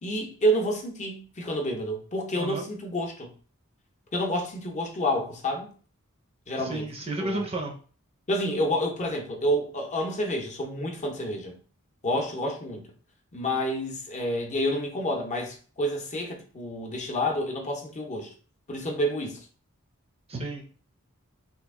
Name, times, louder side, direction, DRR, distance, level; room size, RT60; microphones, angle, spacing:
voice 1, 0.0-3.3 4.1-5.7 6.5-6.8 7.2-7.4 8.3-11.6 12.0-12.9 13.3-18.3 18.7-19.4, equal, 35° left, 0.6 m, -29 dB
voice 2, 2.3-2.6 6.6-7.7 20.3-20.6, right 2 dB, 25° right, 0.5 m, -32 dB
2.9 x 2.4 x 3.5 m
head